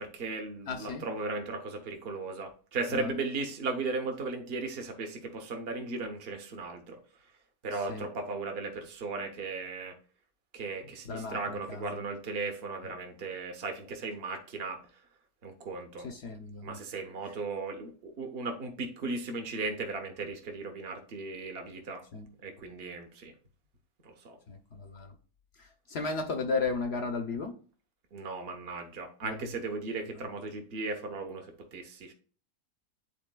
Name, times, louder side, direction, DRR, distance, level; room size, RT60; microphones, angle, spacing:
voice 1, 0.0-7.0 7.6-10.0 10.5-14.8 15.4-16.1 16.6-22.0 22.4-23.3 24.0-24.4 28.1-32.1, right 3 dB, 45° right, 5 dB, 1.1 m, -36 dB
voice 2, 0.7-1.0 2.9-3.1 7.9-8.0 11.1-12.0 16.0-16.8 22.1-22.3 24.5-25.1 25.6-27.5 29.2-29.5, left 4 dB, 55° left, 6 dB, 0.8 m, -35 dB
10.5 x 4.1 x 2.2 m, 0.40 s
omnidirectional pair, 1.6 m